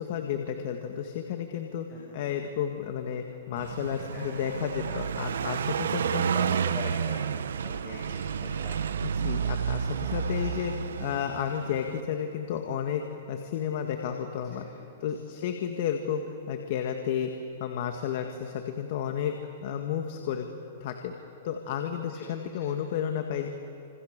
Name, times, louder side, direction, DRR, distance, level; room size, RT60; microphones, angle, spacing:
voice 1, 0.0-1.9 2.1-6.2 9.0-14.7 15.0-17.3 17.6-20.5 20.8-21.2 21.4-23.5, left 8 dB, 55° left, 4 dB, 2.1 m, -32 dB
Car passing by, 3.6-12.0, right 7 dB, 80° right, 1.0 m, -30 dB
voice 2, 3.9-4.3 4.8-7.2 7.6-8.8 9.3-9.5 9.9-10.6 14.0-14.2 14.4-15.1 21.6-22.7, left 3 dB, 30° left, -2 dB, 6.5 m, -44 dB
29.5 x 27.5 x 6.9 m, 2.8 s
hypercardioid pair, 140°, 0 cm